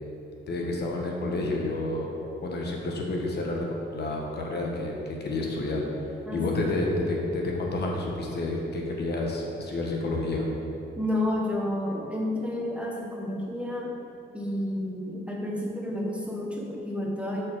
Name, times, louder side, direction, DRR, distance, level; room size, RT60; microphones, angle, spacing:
voice 1, 0.5-2.1 2.4-3.7 3.9-4.9 5.2-10.5, left 2 dB, 55° left, -1 dB, 1.2 m, -29 dB
voice 2, 6.3-6.6 10.9-14.0 14.3-17.4, left 1 dB, 5° right, -2 dB, 1.2 m, -30 dB
8.1 x 4.7 x 4.7 m, 2.8 s
cardioid pair, 90°, 20 cm